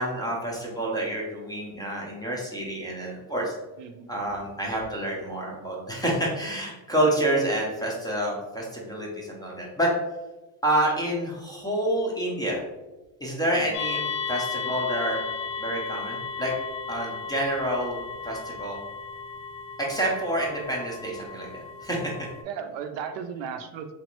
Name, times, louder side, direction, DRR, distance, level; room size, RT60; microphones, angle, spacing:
voice 1, 0.0-3.5 4.1-9.9 10.6-12.6 13.2-14.0 14.3-15.2 15.6-16.5 16.9-18.8 19.8-22.1, right 1 dB, 10° left, -3 dB, 0.4 m, -28 dB
voice 2, 3.8-4.3 13.6-13.7 22.4-23.9, right 7 dB, 70° right, 7 dB, 0.5 m, -36 dB
sound 1, 13.7-22.4, left 5 dB, 65° left, 0.7 m, -35 dB
3.0 x 2.5 x 2.9 m, 1.1 s
cardioid pair, 125°, 47 cm